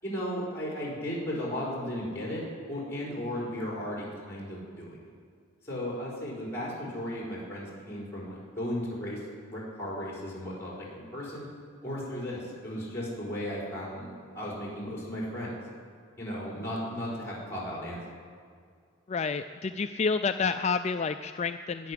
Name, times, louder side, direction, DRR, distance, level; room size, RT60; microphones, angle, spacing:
voice 1, 0.0-5.0 5.6-9.2 9.5-11.5 11.8-15.6 16.2-18.0, equal, 10° left, -5 dB, 4.7 m, -35 dB
voice 2, 19.1-21.9, left 5 dB, 30° left, 8 dB, 0.3 m, -29 dB
20.0 x 6.8 x 9.8 m, 2.1 s
head